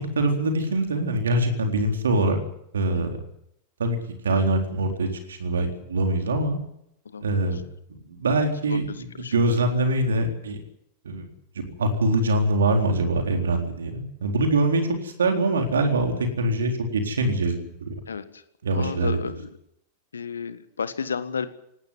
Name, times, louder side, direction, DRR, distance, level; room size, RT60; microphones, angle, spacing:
voice 1, 0.2-2.4 2.7-3.1 3.8-4.0 4.2-6.6 7.2-7.6 7.9-10.6 11.0-11.3 11.6-17.9 18.6-19.2, right 2 dB, 70° right, 4 dB, 4.0 m, -24 dB
voice 2, 8.7-9.3 18.1-18.4 18.7-19.5 20.1-21.5, left 6 dB, 70° left, 13 dB, 1.6 m, -32 dB
18.5 x 18.0 x 9.7 m, 0.75 s
figure-of-eight pair, 90°, 0 cm